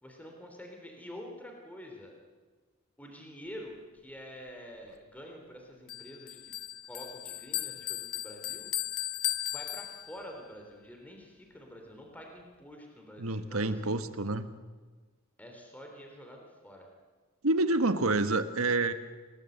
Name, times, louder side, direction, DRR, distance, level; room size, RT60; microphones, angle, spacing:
voice 1, 0.0-2.2 3.0-6.5 6.9-8.7 9.5-14.1 15.4-16.9, equal, 5° left, 2 dB, 3.5 m, -47 dB
Bell, 5.9-10.4, left 14 dB, 80° left, 0.8 m, -36 dB
voice 2, 13.2-14.5 17.4-18.9, right 2 dB, 75° right, 10 dB, 1.5 m, -28 dB
28.0 x 19.0 x 8.1 m, 1.4 s
head